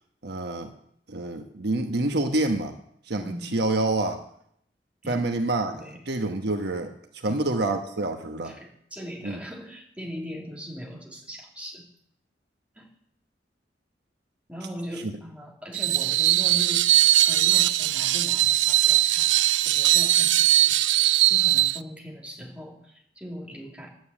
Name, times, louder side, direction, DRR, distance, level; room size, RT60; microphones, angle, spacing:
voice 1, 0.2-0.7 1.1-2.7 3.1-4.2 5.1-8.5 9.2-9.4 15.0-15.1, right 2 dB, 65° right, 6 dB, 1.2 m, -27 dB
voice 2, 3.1-3.6 5.0-5.3 5.7-6.0 7.2-7.4 8.4-11.9 12.7-12.9 14.5-19.4 19.6-20.8 21.3-23.9, equal, 10° right, -1 dB, 3.0 m, -40 dB
Screech, 15.7-21.8, right 15 dB, 90° right, 0.4 m, -20 dB
11.5 x 9.5 x 8.7 m, 0.69 s
head